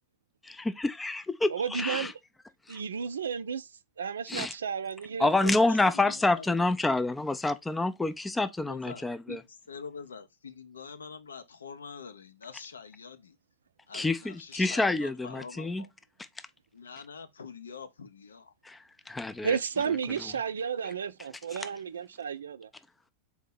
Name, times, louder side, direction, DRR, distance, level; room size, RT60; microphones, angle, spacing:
voice 1, 0.6-2.1 2.7-2.8 4.3-4.5 5.2-9.4 13.9-15.9 18.6-19.6 20.1-20.3 21.5-21.6, left 2 dB, 10° left, 0.4 m, -28 dB
voice 2, 1.5-2.1 2.7-3.7 4.0-5.3 19.4-22.7, right 6 dB, 70° right, 0.3 m, -32 dB
voice 3, 5.3-6.5 8.6-13.4 13.9-15.9 16.7-18.5, left 5 dB, 70° left, 0.5 m, -45 dB
4.2 x 2.8 x 3.8 m
figure-of-eight pair, 90°, 0 cm